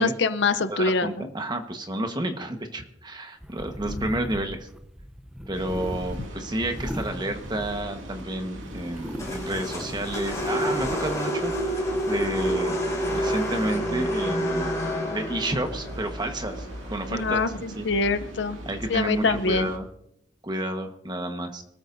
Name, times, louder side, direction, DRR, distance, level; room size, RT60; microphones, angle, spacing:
voice 1, 0.0-1.3 3.9-4.1 17.1-18.6 18.9-19.7, left 3 dB, 60° left, 11 dB, 0.7 m, -25 dB
voice 2, 0.7-4.7 5.5-12.8 13.1-14.7 15.1-17.4 17.8-17.9 18.6-19.9 20.4-21.6, right 1 dB, 20° right, 5 dB, 1.3 m, -30 dB
sound 1, 3.4-8.2 8.6-11.0, equal, 5° right, 0.7 m, -38 dB
sound 2, 5.5-19.8, right 1 dB, 90° right, 2.3 m, -40 dB
sound 3, 9.2-17.5, equal, 15° left, 6.7 m, -29 dB
25.0 x 14.0 x 2.7 m, 0.77 s
head